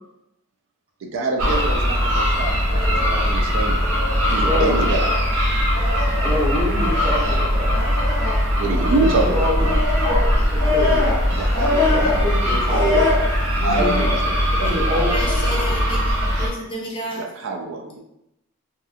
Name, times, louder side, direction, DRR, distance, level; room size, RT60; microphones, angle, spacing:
voice 1, 1.0-3.9 4.3-5.1 8.5-9.6 11.3-13.0 13.6-15.6 17.1-18.0, right 3 dB, 60° right, 2 dB, 0.4 m, -27 dB
sound 1, 1.4-16.5, left 1 dB, 90° right, 0.9 m, -20 dB
voice 2, 4.4-4.8 6.2-7.8 9.1-9.7 10.0-10.3 10.5-11.1 11.9-13.1 13.6-14.1 14.6-15.1, left 1 dB, 25° right, -6 dB, 0.8 m, -25 dB
voice 3, 15.1-17.3, equal, 25° left, -2 dB, 0.5 m, -31 dB
2.8 x 2.3 x 2.4 m, 0.85 s
head